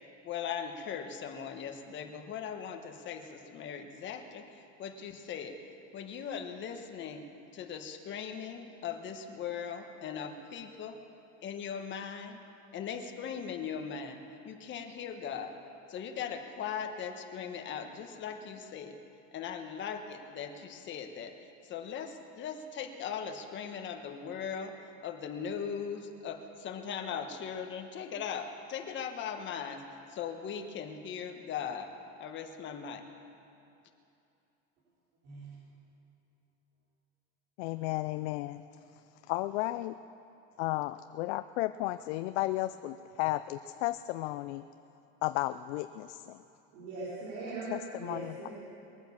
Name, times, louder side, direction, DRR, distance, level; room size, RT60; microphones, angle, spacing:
voice 1, 0.2-4.4 4.8-5.6 5.9-7.2 7.5-11.0 11.4-12.4 12.7-14.2 14.4-15.5 15.9-19.0 19.3-21.3 21.6-24.7 25.0-29.8 30.1-31.9 32.2-33.0, left 7 dB, 30° left, 5 dB, 1.4 m, -39 dB
voice 2, 35.2-35.6 46.7-48.5, right 3 dB, 65° right, -10 dB, 4.9 m, -40 dB
voice 3, 37.6-38.6 39.3-40.0 40.6-44.7 45.2-46.4 47.7-48.3, left 17 dB, 65° left, 12 dB, 0.5 m, -33 dB
21.0 x 9.0 x 7.3 m, 2.7 s
supercardioid pair, 140°, 35 cm